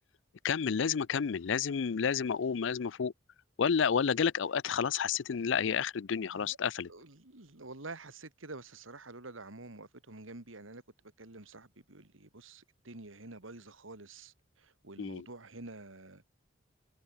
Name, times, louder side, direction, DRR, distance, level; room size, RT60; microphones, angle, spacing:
voice 1, 0.4-3.1 3.6-6.9 15.0-15.3, left 6 dB, 70° left, 0.5 m, -30 dB
voice 2, 6.9-10.8 11.2-16.4, right 2 dB, 85° right, 2.7 m, -48 dB
head